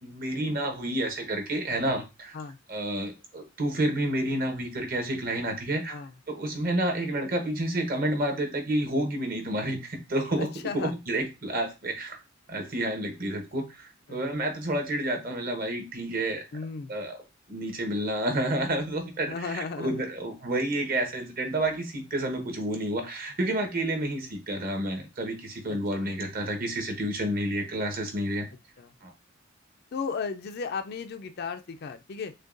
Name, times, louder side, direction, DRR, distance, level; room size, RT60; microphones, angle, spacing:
voice 1, 0.0-2.4 2.7-6.0 6.3-10.5 10.7-12.2 12.5-16.4 16.9-17.2 17.5-28.5 29.0-29.1, right 1 dB, 50° right, 4 dB, 1.0 m, -30 dB
voice 2, 10.4-10.9 14.1-14.2 16.5-17.0 19.3-20.0 26.0-26.1 28.8-28.9 29.9-32.3, left 5 dB, 55° left, 9 dB, 0.4 m, -35 dB
6.2 x 2.2 x 2.5 m, 0.26 s
head